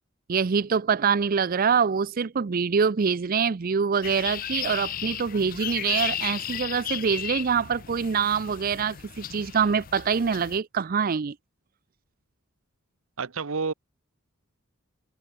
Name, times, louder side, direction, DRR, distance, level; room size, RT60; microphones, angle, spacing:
voice 1, 0.3-11.3, right 6 dB, 45° right, 0.5 m, -25 dB
sound 1, 4.0-10.6, left 10 dB, 45° left, 0.5 m, -35 dB
voice 2, 13.2-13.7, right 4 dB, 85° right, 0.9 m, -29 dB
head